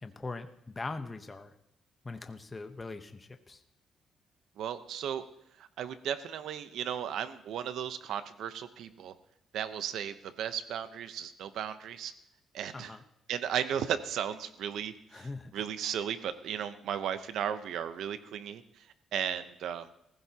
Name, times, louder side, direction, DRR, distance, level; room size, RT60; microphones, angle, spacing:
voice 1, 0.0-1.5 2.0-3.6 12.7-13.0 15.1-15.6, left 3 dB, 20° left, 7 dB, 0.9 m, -41 dB
voice 2, 4.6-5.2 5.6-9.1 9.5-12.1 12.5-13.0 13.3-18.9 19.1-19.9, right 9 dB, 75° right, 11 dB, 0.8 m, -35 dB
19.0 x 15.5 x 2.9 m, 0.78 s
cardioid pair, 125°, 0 cm